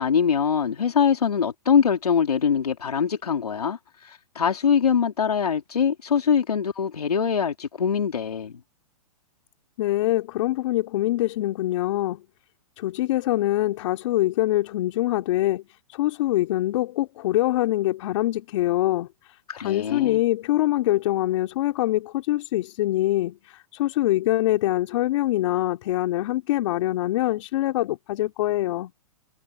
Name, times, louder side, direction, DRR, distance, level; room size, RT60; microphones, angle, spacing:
voice 1, 0.0-3.8 4.0-8.5 19.5-20.2, left 7 dB, 90° left, 3.4 m, -23 dB
voice 2, 9.8-12.2 12.8-28.9, left 15 dB, 55° left, 3.3 m, -24 dB
hypercardioid pair, 130°, 19 cm